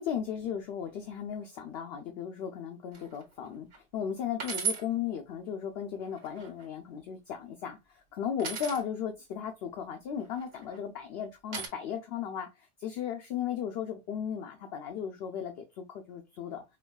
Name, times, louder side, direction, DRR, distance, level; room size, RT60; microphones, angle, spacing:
voice 1, 0.0-16.6, left 8 dB, 65° left, 0.7 m, -36 dB
sound 1, 2.9-3.2 3.7-3.8 4.4-4.8 6.0-6.7 8.4-8.8 10.3-10.8 11.5-11.7, right 6 dB, 90° right, 1.4 m, -35 dB
4.5 x 2.3 x 2.2 m
omnidirectional pair, 1.2 m